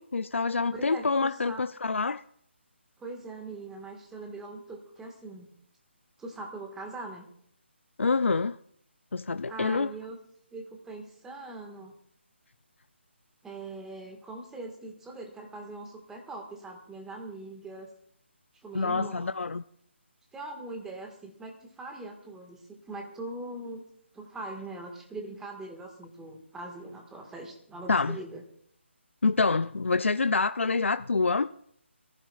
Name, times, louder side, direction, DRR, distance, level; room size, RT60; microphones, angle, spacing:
voice 1, 0.0-2.2 8.0-8.6 9.1-9.9 18.7-19.6 27.9-28.2 29.2-31.5, left 4 dB, 80° left, 0.5 m, -26 dB
voice 2, 0.7-1.6 3.0-5.5 6.2-7.3 9.5-10.2 10.5-11.9 13.4-17.9 18.6-19.4 20.3-23.8 24.1-28.4, right 2 dB, 5° right, 1.7 m, -41 dB
23.5 x 15.0 x 2.4 m
figure-of-eight pair, 150°, 7 cm